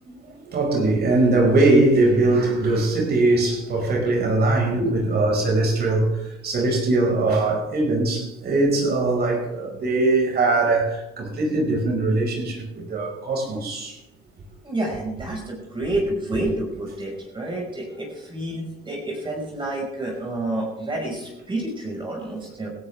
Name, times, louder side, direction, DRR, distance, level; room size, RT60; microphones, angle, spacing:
voice 1, 0.1-14.0, right 2 dB, 50° right, 1 dB, 5.5 m, -21 dB
voice 2, 14.6-22.7, right 1 dB, 25° right, -2 dB, 5.4 m, -29 dB
16.5 x 16.5 x 3.5 m, 0.91 s
cardioid pair, 100°, 21 cm